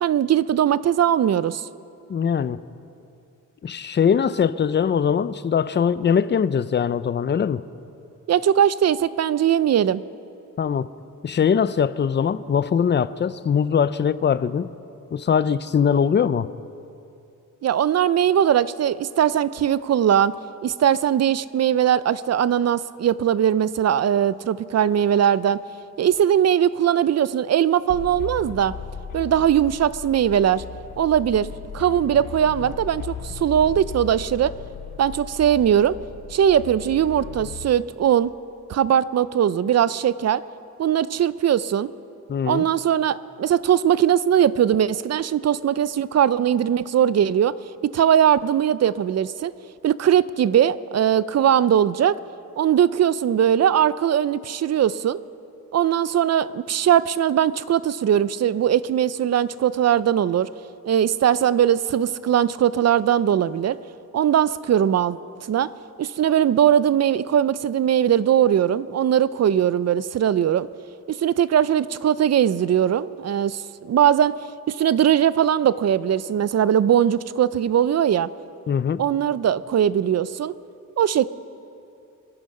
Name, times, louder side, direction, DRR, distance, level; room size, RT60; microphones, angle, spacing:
voice 1, 0.0-1.7 8.3-10.0 17.6-20.4 20.6-25.6 26.0-28.7 29.1-30.6 31.0-34.5 35.0-36.0 36.3-38.3 38.7-40.4 40.8-41.9 42.5-47.5 47.9-49.5 49.8-52.2 52.6-55.2 55.7-60.5 60.8-63.8 64.1-65.2 65.5-65.7 66.0-70.7 71.1-73.6 73.9-74.3 74.7-78.3 79.0-80.5 81.0-81.3, right 9 dB, 50° right, 17 dB, 0.5 m, -20 dB
voice 2, 2.1-2.6 3.6-7.6 10.6-10.9 11.2-14.7 15.1-16.5 42.3-42.6 78.7-79.0, left 7 dB, 35° left, 15 dB, 0.5 m, -21 dB
sound 1, 27.9-37.7, left 6 dB, 75° left, 0.9 m, -37 dB
24.5 x 11.0 x 5.3 m, 2.6 s
wide cardioid pair, 125°, 33 cm